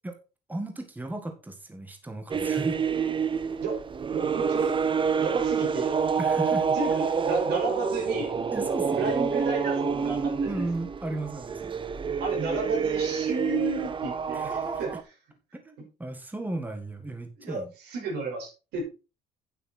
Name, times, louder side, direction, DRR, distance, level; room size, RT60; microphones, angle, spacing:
voice 1, 0.5-2.8 6.2-6.7 8.5-9.2 10.4-11.7 14.3-15.0 15.5-17.7, right 2 dB, 10° right, 5 dB, 1.7 m, -35 dB
sound 1, 2.3-15.0, right 6 dB, 30° right, 0.9 m, -28 dB
voice 2, 4.1-4.7 5.2-6.0 6.7-8.3 9.0-10.7 12.2-14.5 14.8-15.0 17.4-18.8, right 3 dB, 80° right, 1 dB, 5.3 m, -32 dB
9.3 x 7.7 x 4.3 m, 0.32 s
cardioid pair, 110°, 17 cm